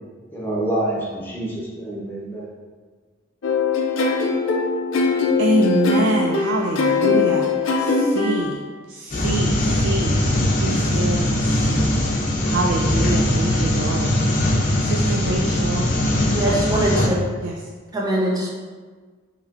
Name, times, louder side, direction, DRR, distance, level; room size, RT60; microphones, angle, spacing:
voice 1, 0.3-2.5, right 1 dB, 10° left, -6 dB, 0.9 m, -27 dB
sound 1, 3.4-8.5, left 4 dB, 85° left, 0.5 m, -21 dB
voice 2, 5.4-8.6 8.9-10.2 10.6-12.0 12.4-14.5 14.8-15.9 16.5-16.6 17.4-17.6, right 2 dB, 65° right, 2 dB, 0.4 m, -25 dB
sound 2, 9.1-17.1, left 1 dB, 45° left, 0.6 m, -20 dB
voice 3, 16.3-17.2 17.9-18.5, right 1 dB, 20° right, -4 dB, 0.7 m, -22 dB
5.6 x 3.1 x 2.5 m, 1.5 s
head